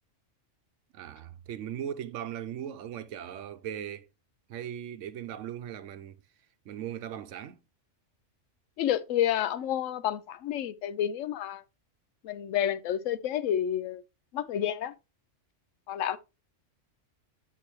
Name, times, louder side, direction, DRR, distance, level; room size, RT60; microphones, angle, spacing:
voice 1, 0.9-4.1 4.5-6.2 6.7-7.6, right 10 dB, 80° right, 0.9 m, -38 dB
voice 2, 8.8-11.6 12.2-14.0 14.3-14.9 15.9-16.2, left 10 dB, 85° left, 1.0 m, -29 dB
8.5 x 5.9 x 3.0 m
omnidirectional pair, 1.3 m